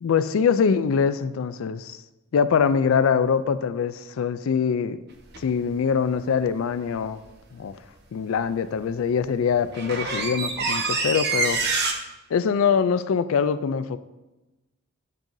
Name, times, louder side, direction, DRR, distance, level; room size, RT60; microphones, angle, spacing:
voice 1, 0.0-2.0 2.3-5.0 5.4-7.2 7.5-7.7 8.1-11.6 12.3-14.0, left 6 dB, 90° left, 13 dB, 0.4 m, -23 dB
sound 1, 5.3-5.5 9.1-9.2 9.5-11.9, right 4 dB, 55° right, 1.0 m, -26 dB
12.0 x 5.4 x 2.6 m, 1.0 s
head